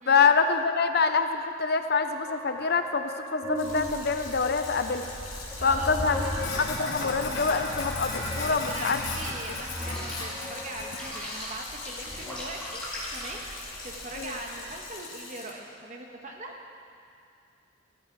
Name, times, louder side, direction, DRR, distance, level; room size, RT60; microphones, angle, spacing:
voice 1, 0.1-5.0 5.6-6.3 6.6-9.0 14.2-14.3, left 5 dB, 50° left, 8 dB, 0.6 m, -25 dB
sound 1, 2.0-7.0 7.5-14.2, equal, 5° left, 2.8 m, -37 dB
Sink (filling or washing), 3.6-15.5, left 3 dB, 70° left, 2.7 m, -39 dB
sound 2, 3.6-14.9, right 1 dB, 60° right, 1.9 m, -45 dB
voice 2, 5.6-6.0 8.4-13.4 13.8-16.6, right 2 dB, 35° right, 1 dB, 1.4 m, -41 dB
15.0 x 13.5 x 4.7 m, 2.4 s
head